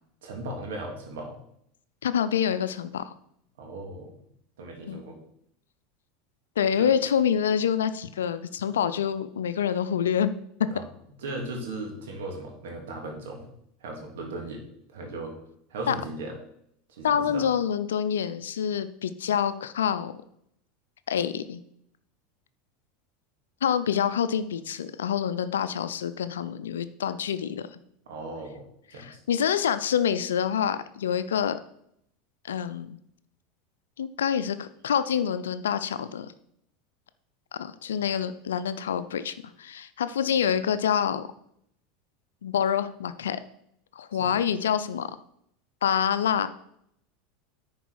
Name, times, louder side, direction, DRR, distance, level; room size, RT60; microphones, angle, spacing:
voice 1, 0.2-1.4 3.6-4.1 4.6-5.2 6.8-6.9 10.7-10.8 11.2-13.5 13.8-14.6 14.9-15.4 15.7-16.3 16.9-17.5 28.1-28.6 28.9-29.2 44.2-44.3, right 2 dB, 75° right, 1 dB, 2.3 m, -37 dB
voice 2, 2.0-3.1 4.9-5.0 6.6-10.3 15.9-16.0 17.0-20.1 21.1-21.6 23.6-27.8 28.9-31.6 32.4-33.0 34.0-36.3 37.6-41.2 42.4-43.4 43.9-45.1 45.8-46.5, left 8 dB, 85° left, 12 dB, 0.5 m, -26 dB
10.0 x 4.6 x 4.7 m, 0.73 s
hypercardioid pair, 90°, 0 cm